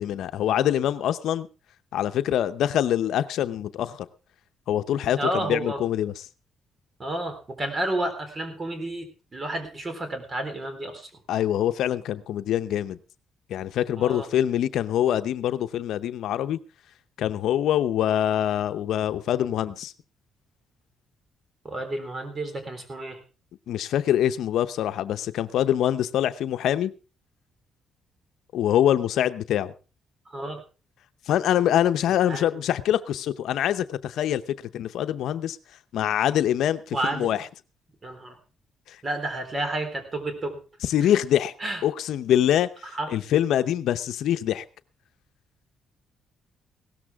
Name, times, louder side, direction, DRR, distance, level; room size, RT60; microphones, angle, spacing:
voice 1, 0.0-1.5 1.9-4.1 4.7-6.2 11.3-13.0 13.5-16.6 17.2-19.9 23.7-26.9 28.5-29.7 31.3-34.4 34.7-35.6 35.9-37.5 38.9-39.0 40.8-41.5 41.8-44.6, left 11 dB, 80° left, 11 dB, 0.7 m, -24 dB
voice 2, 5.2-5.8 7.0-11.1 14.0-14.3 21.6-23.2 30.3-30.6 32.3-32.4 36.9-37.3 38.0-38.4 39.0-40.6 41.6-41.8 42.9-43.1, right 1 dB, 30° right, 8 dB, 3.8 m, -30 dB
17.0 x 13.5 x 3.6 m, 0.33 s
cardioid pair, 90°, 0 cm